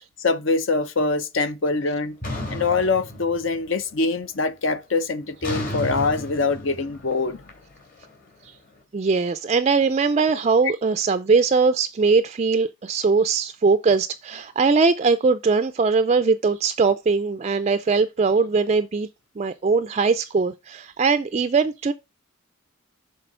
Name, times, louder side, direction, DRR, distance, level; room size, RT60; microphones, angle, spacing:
voice 1, 0.2-2.2 2.5-7.4, left 3 dB, 65° left, 0.8 m, -24 dB
sound 1, 2.2-3.8 4.1-4.5 5.4-8.5, left 1 dB, 45° left, 2.6 m, -33 dB
voice 2, 8.9-19.1 19.4-21.9, right 4 dB, 30° right, 0.3 m, -21 dB
6.7 x 3.9 x 5.4 m
head